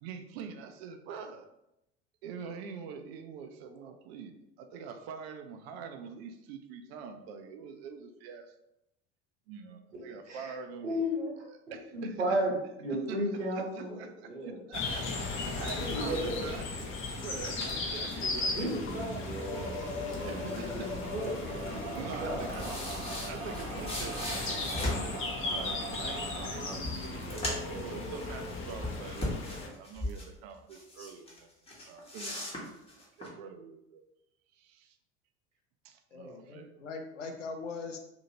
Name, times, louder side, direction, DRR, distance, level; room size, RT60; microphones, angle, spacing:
voice 1, 0.0-1.5 2.2-8.5 9.5-10.9 11.5-12.4 13.1-16.9 17.2-19.4 20.0-20.9 21.9-22.7 23.2-31.5 31.8-34.1 34.5-35.0 35.8-36.7, right 6 dB, 60° right, 7 dB, 0.5 m, -45 dB
voice 2, 10.8-11.4 11.9-14.6 15.5-16.5 18.5-20.8 21.1-22.7, equal, 80° right, -2 dB, 1.0 m, -35 dB
sound 1, 14.7-29.7, left 3 dB, 35° left, 0.7 m, -37 dB
Male singing, 18.8-28.6, right 1 dB, 35° right, 0.8 m, -41 dB
sound 2, 22.5-25.2 26.3-26.4 26.7-27.8 28.1-30.3 30.7-31.4 31.7-33.3, left 1 dB, 15° left, 1.0 m, -37 dB
voice 3, 36.1-38.0, left 4 dB, 85° left, 4 dB, 0.5 m, -41 dB
2.8 x 2.6 x 2.7 m, 0.84 s
figure-of-eight pair, 70°, 36 cm